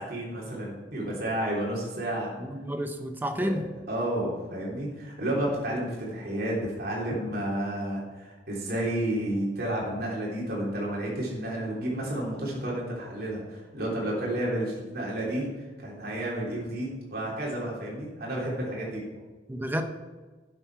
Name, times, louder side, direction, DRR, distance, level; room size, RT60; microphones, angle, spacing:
voice 1, 0.0-2.3 3.4-3.5 3.9-15.5 15.8-19.0, right 1 dB, 55° right, -4 dB, 3.1 m, -31 dB
voice 2, 2.4-3.7 18.6-18.7 19.5-19.8, equal, 10° right, 6 dB, 0.8 m, -30 dB
11.5 x 7.6 x 4.7 m, 1.3 s
head